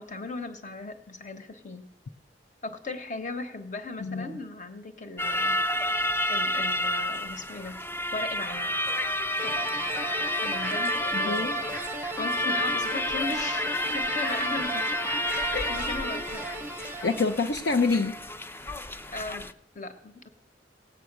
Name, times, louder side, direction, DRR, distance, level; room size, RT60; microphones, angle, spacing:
voice 1, 0.0-1.9 2.6-5.6 6.3-7.8 8.1-8.7 9.4-9.7 10.4-14.9 15.3-16.5 19.1-19.5 19.7-20.3, left 3 dB, 45° left, 8 dB, 1.2 m, -37 dB
voice 2, 4.0-4.4 11.1-11.6 15.5-15.8 16.8-18.2, left 4 dB, 65° left, 5 dB, 0.6 m, -27 dB
sound 1, 5.2-19.5, left 1 dB, 15° left, 0.4 m, -30 dB
sound 2, 9.4-17.7, right 2 dB, 15° right, 0.7 m, -36 dB
17.5 x 8.3 x 6.2 m, 0.79 s
head